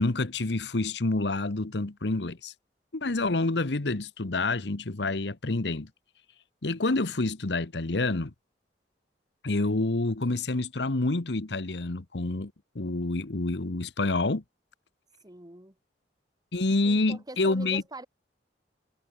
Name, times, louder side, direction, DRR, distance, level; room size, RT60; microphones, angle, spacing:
voice 1, 0.0-2.5 2.9-5.9 6.6-8.3 9.4-14.4 16.5-17.8, left 2 dB, 75° left, 1.2 m, -28 dB
voice 2, 15.2-15.7 16.8-18.1, right 2 dB, 25° right, 4.2 m, -43 dB
head